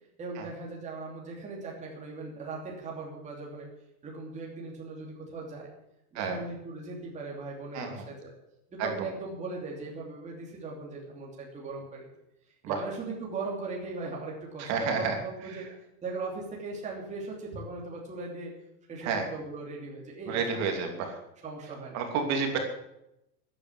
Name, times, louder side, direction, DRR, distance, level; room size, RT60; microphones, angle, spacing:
voice 1, 0.2-3.7 4.0-5.7 6.1-8.3 8.7-12.1 12.7-15.7 16.0-18.5 18.9-21.0 21.4-22.0, right 3 dB, 15° right, -2 dB, 3.0 m, -39 dB
voice 2, 7.7-8.0 8.8-8.9 12.6-12.8 14.6-15.2 15.5-15.7 19.0-19.2 20.3-21.2 21.9-22.6, right 5 dB, 35° right, 4 dB, 2.9 m, -30 dB
14.0 x 9.7 x 9.8 m, 0.85 s
supercardioid pair, 175°, 46 cm